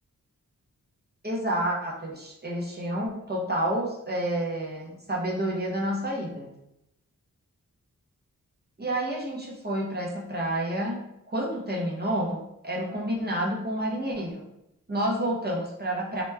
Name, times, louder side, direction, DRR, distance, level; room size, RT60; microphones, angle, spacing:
voice 1, 1.2-6.5 8.8-14.4 14.9-16.2, right 1 dB, 30° right, -3 dB, 0.7 m, -29 dB
3.0 x 2.2 x 3.2 m, 0.84 s
wide cardioid pair, 65°, 34 cm